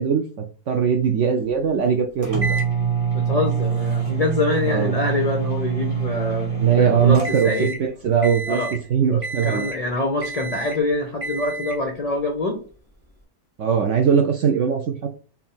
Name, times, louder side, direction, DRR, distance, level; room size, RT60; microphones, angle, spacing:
voice 1, 0.0-2.6 4.7-4.9 6.5-7.7 8.0-8.6 8.9-9.7 13.6-15.2, right 7 dB, 70° right, 3 dB, 0.7 m, -21 dB
sound 1, 2.2-7.9 8.2-8.8 9.2-9.9 10.2-10.8 11.2-11.8, right 6 dB, 25° right, 0.9 m, -26 dB
voice 2, 3.1-6.5 6.8-7.8 8.5-8.7 9.1-12.6, left 2 dB, 75° left, 2 dB, 0.3 m, -25 dB
4.6 x 2.6 x 3.6 m, 0.40 s
omnidirectional pair, 1.8 m